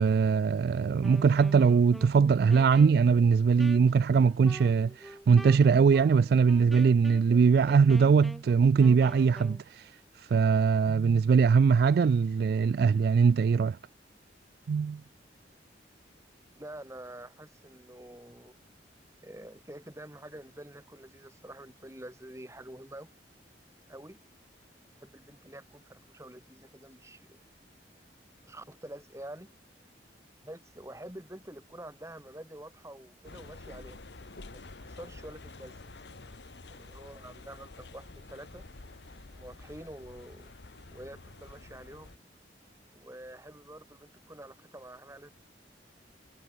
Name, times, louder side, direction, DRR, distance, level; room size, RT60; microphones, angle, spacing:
voice 1, 0.0-9.9 10.2-13.8 14.7-15.0, right 5 dB, 60° right, 0.3 m, -22 dB
Wind instrument woodwind instrument, 0.9-9.6, equal, ahead, 2.8 m, -47 dB
voice 2, 16.6-18.6 19.2-23.1 23.9-24.2 25.0-27.4 28.4-29.5 30.4-34.0 34.5-35.9 36.7-38.7 39.3-40.5 40.9-42.1 42.9-45.3, right 1 dB, 15° right, 3.1 m, -47 dB
sound 1, 33.2-42.2, left 2 dB, 75° left, 1.2 m, -49 dB
head